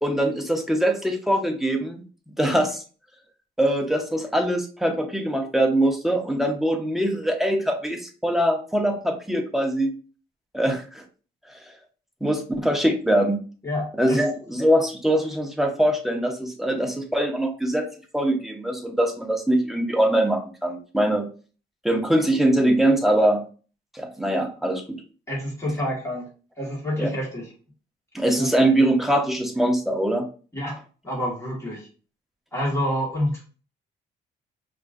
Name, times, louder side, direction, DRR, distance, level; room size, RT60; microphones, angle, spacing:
voice 1, 0.0-2.0 2.4-2.8 3.6-9.9 10.5-11.0 12.2-13.4 14.0-17.9 18.1-21.3 21.8-23.4 23.9-25.0 27.0-27.1 28.1-30.3, right 1 dB, ahead, 3 dB, 0.8 m, -22 dB
voice 2, 13.6-14.2 25.3-26.3 26.6-27.5 28.4-28.5 30.5-30.8 31.0-31.9 32.5-33.4, equal, 15° left, -4 dB, 1.8 m, -28 dB
5.2 x 2.5 x 2.6 m, 0.37 s
cardioid pair, 90°, 20 cm